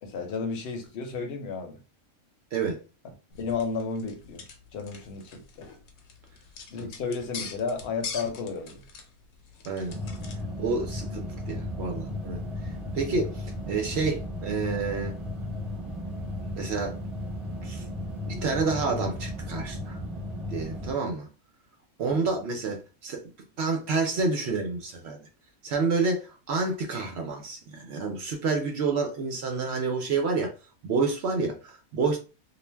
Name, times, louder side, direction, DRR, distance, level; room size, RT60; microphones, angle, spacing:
voice 1, 0.0-1.8 3.4-4.4 4.7-5.7 6.7-8.8 22.0-22.3, left 4 dB, 55° left, 0.8 m, -33 dB
sound 1, 3.3-10.4, left 6 dB, 75° left, 1.1 m, -43 dB
voice 2, 9.6-10.0 10.6-12.4 12.9-15.2 16.5-17.0 17.6-17.8 18.3-20.0 20.5-21.3 22.0-23.3 23.6-25.2 25.6-30.5 30.8-32.2, right 4 dB, 65° right, 0.7 m, -29 dB
sound 2, 9.9-20.9, left 1 dB, ahead, 0.3 m, -35 dB
2.5 x 2.1 x 3.2 m
omnidirectional pair, 1.5 m